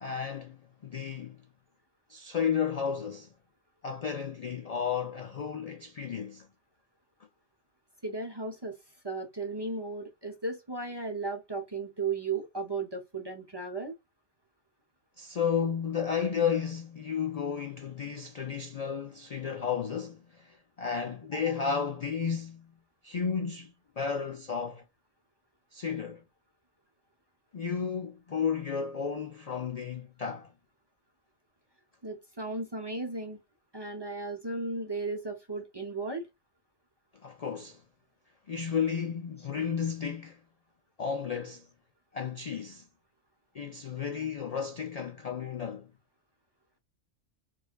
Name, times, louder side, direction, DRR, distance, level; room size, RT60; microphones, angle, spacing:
voice 1, 0.0-0.6 0.8-1.4 2.1-3.3 3.8-6.5 15.2-22.8 23.0-24.8 25.7-26.2 27.5-30.5 37.2-37.8 38.5-40.4 41.0-41.7 42.1-42.9 43.5-45.9, left 6 dB, 65° left, 0.3 m, -33 dB
voice 2, 8.0-8.8 9.0-13.9 21.3-21.5 32.0-33.4 33.7-36.3, right 3 dB, 25° right, 0.6 m, -35 dB
4.8 x 2.4 x 2.3 m
omnidirectional pair, 1.3 m